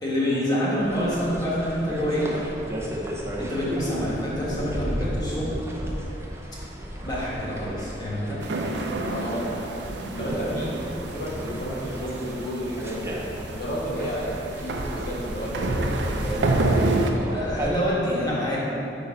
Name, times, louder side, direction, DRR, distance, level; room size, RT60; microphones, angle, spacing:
voice 1, 0.0-2.3 3.4-5.5 7.0-8.4 10.1-10.3 17.3-18.6, equal, 25° left, -7 dB, 1.4 m, -27 dB
sound 1, 0.8-17.8, equal, 15° right, 0.7 m, -34 dB
sound 2, 8.4-17.1, right 2 dB, 65° right, 0.5 m, -29 dB
voice 2, 8.7-9.8 10.2-10.7 11.1-13.1 13.5-17.3, equal, 60° left, -5 dB, 1.2 m, -32 dB
5.5 x 3.9 x 5.2 m, 2.8 s
head